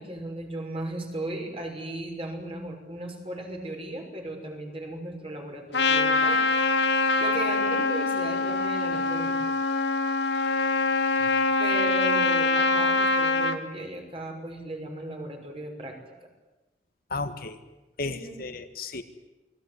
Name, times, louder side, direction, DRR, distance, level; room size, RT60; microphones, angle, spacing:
voice 1, 0.0-6.4 6.9-9.6 11.6-16.3 18.0-18.4, right 1 dB, 35° right, 3 dB, 5.9 m, -36 dB
Trumpet, 5.7-13.6, left 3 dB, 80° left, 2.1 m, -24 dB
voice 2, 17.1-17.6 18.0-19.0, left 3 dB, 55° left, 8 dB, 1.8 m, -33 dB
29.0 x 20.5 x 9.7 m, 1.0 s
head